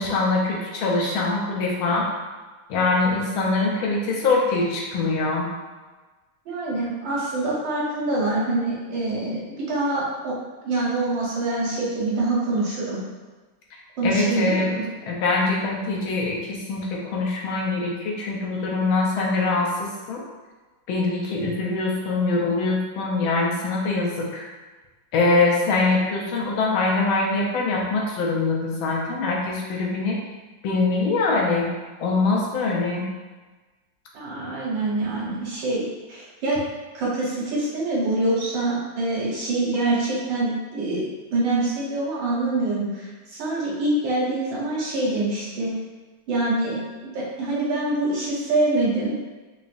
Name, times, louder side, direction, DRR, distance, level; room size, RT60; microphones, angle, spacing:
voice 1, 0.0-2.1 2.7-5.5 14.0-14.7 15.1-20.2 20.9-24.4 25.1-30.2 30.6-31.7 32.0-33.1 35.3-35.4, left 3 dB, 85° left, -2 dB, 1.5 m, -23 dB
voice 2, 6.4-10.3 10.6-13.0 14.0-14.8 34.1-35.8 36.1-36.6 36.9-41.0 41.3-45.7 46.3-46.8 47.1-49.1, right 2 dB, 70° right, -6 dB, 1.7 m, -25 dB
5.0 x 2.5 x 2.5 m, 1.3 s
omnidirectional pair, 2.2 m